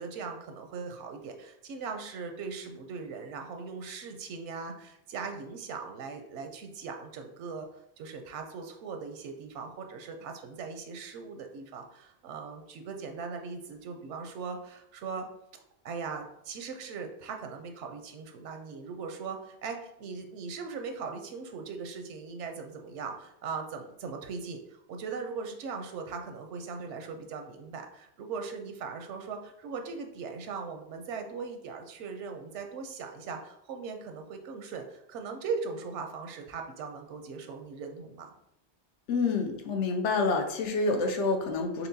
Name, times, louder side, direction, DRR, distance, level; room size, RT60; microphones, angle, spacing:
voice 1, 0.0-15.3 15.8-38.3, right 5 dB, 85° right, 4 dB, 0.9 m, -39 dB
voice 2, 39.1-41.9, left 3 dB, 85° left, 5 dB, 1.0 m, -28 dB
4.3 x 3.5 x 2.6 m, 0.78 s
omnidirectional pair, 1.2 m